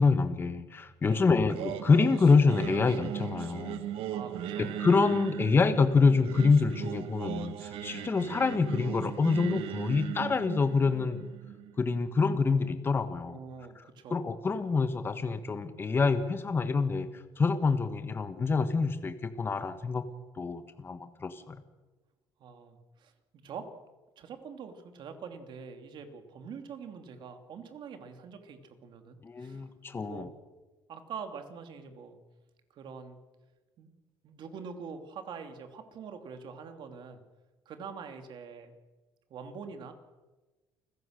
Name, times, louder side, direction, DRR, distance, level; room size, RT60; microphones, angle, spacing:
voice 1, 0.0-3.8 4.6-11.3 11.8-13.4 14.1-17.1 17.4-20.1 20.3-21.6 29.2-30.3, left 4 dB, 25° left, 9 dB, 1.3 m, -26 dB
voice 2, 1.0-1.3 4.1-4.7 13.3-14.2 22.4-23.1 23.4-23.7 24.2-29.7 30.0-30.3 30.9-32.2 32.7-33.2 33.8-33.9 34.2-37.2 37.7-38.7 39.3-39.9, right 6 dB, 55° right, 6 dB, 2.8 m, -44 dB
Singing, 1.5-12.6, right 10 dB, 80° right, 1.6 m, -38 dB
29.0 x 16.0 x 6.6 m, 1.2 s
cardioid pair, 135°, 9 cm